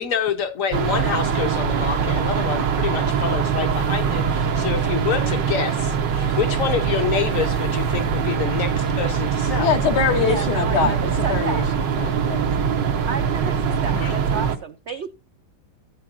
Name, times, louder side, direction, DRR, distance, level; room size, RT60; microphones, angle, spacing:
voice 1, 0.0-9.7 13.9-14.1, left 7 dB, 55° left, 1.2 m, -27 dB
sound 1, 0.7-14.6, right 7 dB, 90° right, 1.7 m, -23 dB
voice 2, 9.6-12.4, left 7 dB, 70° left, 1.6 m, -23 dB
voice 3, 10.2-11.7 13.1-15.1, right 6 dB, 70° right, 0.6 m, -31 dB
14.5 x 8.9 x 2.5 m
omnidirectional pair, 1.9 m